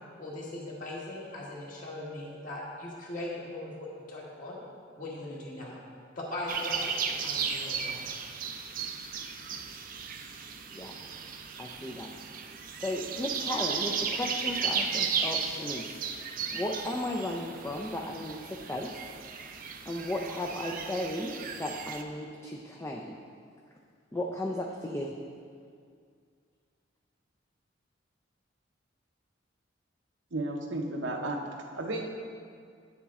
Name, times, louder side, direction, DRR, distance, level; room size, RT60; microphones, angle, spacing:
voice 1, 0.2-4.6 5.0-5.8 6.1-8.0, left 1 dB, 45° left, -4 dB, 1.7 m, -39 dB
sound 1, 6.5-22.0, right 6 dB, 45° right, 0.5 m, -35 dB
voice 2, 11.6-12.2 12.7-15.9 16.5-19.0 19.9-23.2 24.1-25.1, left 1 dB, 15° left, 0 dB, 0.4 m, -35 dB
voice 3, 30.3-31.4 31.8-32.2, right 2 dB, 75° right, 2 dB, 0.8 m, -33 dB
8.7 x 7.1 x 3.6 m, 2.2 s
head